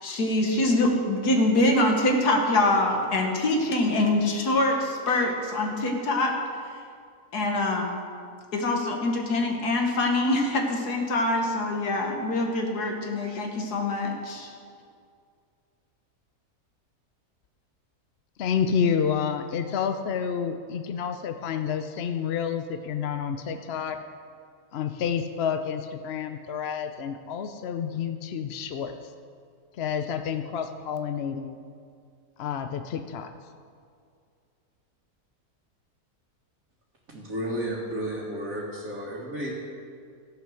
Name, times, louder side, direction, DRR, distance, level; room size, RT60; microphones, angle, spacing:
voice 1, 0.0-6.3 7.3-8.0 8.5-14.5, left 2 dB, 90° left, 2 dB, 1.9 m, -24 dB
voice 2, 18.4-24.0 24.7-29.1 29.8-31.6 32.4-33.3, left 7 dB, 60° left, 7 dB, 0.6 m, -29 dB
voice 3, 37.1-39.6, right 1 dB, 60° right, -6 dB, 2.2 m, -32 dB
14.5 x 8.1 x 6.3 m, 2.2 s
omnidirectional pair, 1.6 m